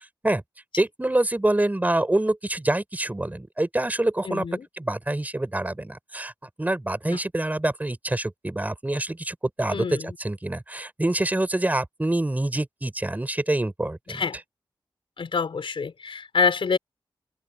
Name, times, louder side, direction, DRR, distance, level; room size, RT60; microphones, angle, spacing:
voice 1, 0.8-4.5 4.8-6.3 6.6-14.2, right 1 dB, 20° right, 5.4 m, -26 dB
voice 2, 4.3-4.6 7.1-7.2 9.7-10.1 14.1-14.4 15.2-16.8, left 5 dB, 80° left, 4.6 m, -26 dB
open air
wide cardioid pair, 100°, 9 cm